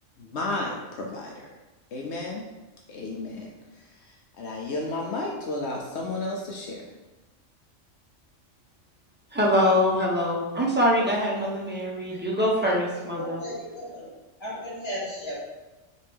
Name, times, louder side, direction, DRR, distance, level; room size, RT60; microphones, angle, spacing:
voice 1, 0.2-1.5 1.9-2.5 2.9-3.5 3.7-6.9, left 2 dB, 70° left, -1 dB, 0.8 m, -33 dB
voice 2, 9.3-13.4, left 1 dB, 15° right, -4 dB, 0.4 m, -24 dB
voice 3, 13.2-14.1 14.4-15.4, equal, 20° left, -8 dB, 1.5 m, -35 dB
4.2 x 3.1 x 3.4 m, 1.1 s
omnidirectional pair, 1.3 m